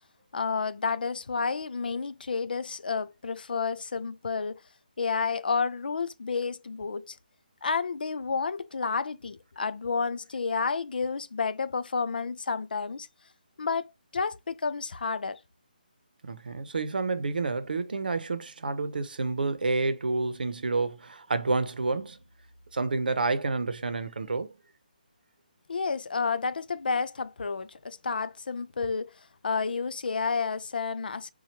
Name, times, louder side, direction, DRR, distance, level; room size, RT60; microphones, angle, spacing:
voice 1, 0.3-4.6 5.0-7.2 7.6-13.1 13.6-13.9 14.1-15.4 25.7-29.1 29.4-31.3, left 5 dB, 80° left, 0.4 m, -30 dB
voice 2, 16.2-22.2 22.7-24.5, right 3 dB, 75° right, 0.7 m, -29 dB
4.4 x 2.3 x 2.8 m
hypercardioid pair, 175°, 5 cm